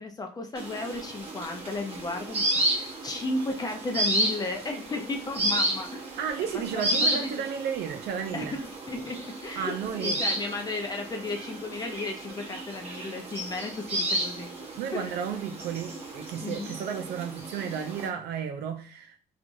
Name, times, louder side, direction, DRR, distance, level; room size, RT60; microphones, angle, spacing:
voice 1, 0.0-6.0 6.5-7.4 8.3-14.5 14.9-15.2 16.4-16.7, left 2 dB, 25° left, 0.6 m, -34 dB
sound 1, 0.5-18.1, right 1 dB, 35° right, 0.8 m, -32 dB
voice 2, 6.2-8.6 9.6-10.2 14.8-19.2, right 7 dB, 70° right, 0.6 m, -33 dB
2.9 x 2.4 x 2.6 m
cardioid pair, 110°, 17 cm